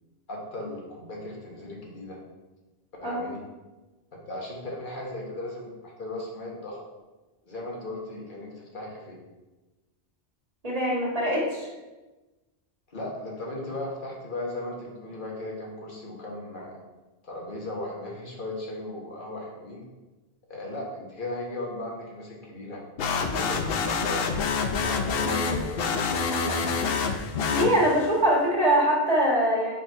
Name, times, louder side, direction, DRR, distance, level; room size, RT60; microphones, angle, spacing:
voice 1, 0.3-2.2 3.0-3.4 4.3-6.8 7.4-9.2 12.9-16.8 17.2-19.8 20.5-22.8 23.3-24.3 24.8-27.1, left 1 dB, 50° left, -2 dB, 1.4 m, -36 dB
voice 2, 10.6-11.7 27.5-29.7, equal, 35° right, -4 dB, 1.7 m, -23 dB
sound 1, 23.0-28.2, left 5 dB, 65° left, 0.7 m, -27 dB
5.0 x 4.3 x 4.5 m, 1.1 s
omnidirectional pair, 1.1 m